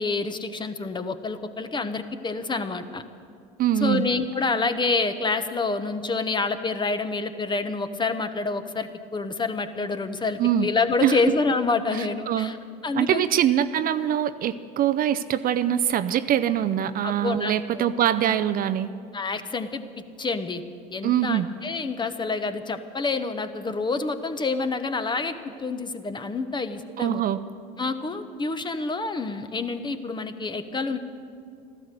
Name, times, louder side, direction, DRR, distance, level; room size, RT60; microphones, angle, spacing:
voice 1, 0.0-3.0 3.8-12.6 12.8-13.2 17.0-18.0 19.1-19.8 20.2-20.6 20.9-27.2 27.8-31.0, left 3 dB, 20° left, 10 dB, 1.0 m, -27 dB
voice 2, 3.6-4.1 10.4-10.7 11.0-11.2 11.9-12.5 12.9-18.9 21.0-21.5 27.0-27.4, right 10 dB, 45° right, 11 dB, 0.6 m, -23 dB
14.0 x 12.5 x 6.8 m, 2.3 s
hypercardioid pair, 75°, 20 cm